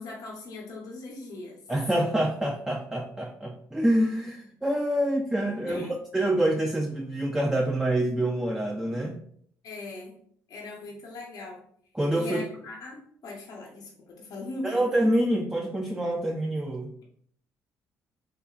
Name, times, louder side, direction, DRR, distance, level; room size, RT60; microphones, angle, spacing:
voice 1, 0.0-1.6 5.7-5.9 9.6-10.2 10.5-11.6 12.1-14.8 16.3-16.4, left 2 dB, 65° left, -2 dB, 0.7 m, -40 dB
voice 2, 1.7-5.9 6.1-9.2 11.9-12.4 14.6-16.9, right 1 dB, 10° right, 2 dB, 0.3 m, -26 dB
2.9 x 2.3 x 2.2 m, 0.63 s
supercardioid pair, 65°, 7 cm